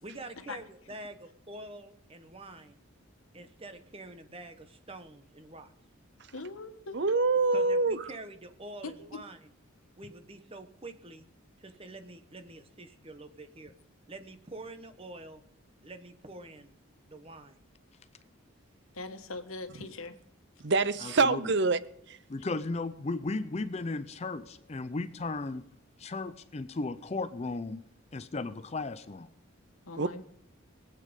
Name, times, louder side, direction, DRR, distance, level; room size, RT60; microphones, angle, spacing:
voice 1, 0.0-2.8 3.3-5.7 7.5-9.4 10.0-11.3 11.6-13.7 14.1-15.4 15.8-16.7 17.1-17.6, right 2 dB, 25° right, 8 dB, 1.0 m, -46 dB
voice 2, 6.3-7.6 8.8-9.2 18.9-20.2 29.9-30.2, left 3 dB, 80° left, 8 dB, 1.3 m, -42 dB
voice 3, 6.9-8.1 20.6-21.8 22.1-22.2 30.0-30.2, right 3 dB, 55° right, 15 dB, 0.6 m, -26 dB
voice 4, 21.0-21.4 22.3-25.6 26.0-27.8 28.1-29.3, left 3 dB, 30° left, 13 dB, 0.4 m, -35 dB
21.5 x 8.4 x 5.3 m, 0.75 s
head